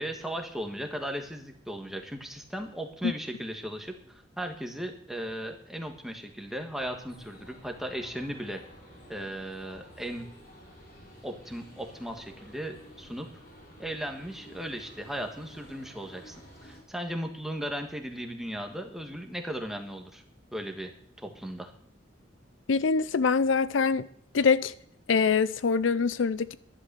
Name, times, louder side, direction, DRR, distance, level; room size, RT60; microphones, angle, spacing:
voice 1, 0.0-8.6 9.1-10.3 11.2-13.3 13.8-20.2 20.5-21.7, equal, ahead, 1.4 m, -37 dB
sound 1, 6.7-16.8, equal, 50° left, 4.8 m, -52 dB
voice 2, 22.7-24.1 24.3-24.7 25.1-26.6, left 5 dB, 85° left, 0.5 m, -24 dB
11.5 x 11.0 x 6.8 m
head